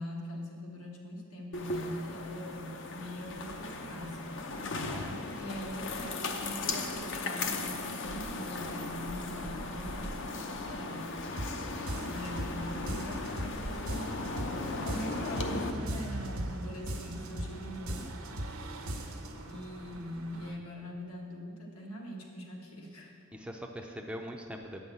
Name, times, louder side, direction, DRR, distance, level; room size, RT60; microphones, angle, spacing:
voice 1, 0.0-5.0 5.3-11.2 12.0-14.3 14.8-18.1 19.5-23.1, equal, 80° left, -1 dB, 1.6 m, -42 dB
sound 1, 1.5-15.7, left 3 dB, 55° left, 0.7 m, -37 dB
sound 2, 3.2-20.6, right 1 dB, 70° right, 0.8 m, -46 dB
voice 2, 4.8-5.5 11.4-11.8 23.3-24.8, equal, 5° right, 2 dB, 0.4 m, -43 dB
sound 3, 11.4-11.6 11.9-12.6 12.9-13.6 13.9-14.6 14.9-15.6 15.9-16.6 16.9-17.6 17.9-18.6 18.9-19.3, right 1 dB, 85° right, 1.3 m, -38 dB
9.0 x 5.5 x 7.7 m, 2.2 s
head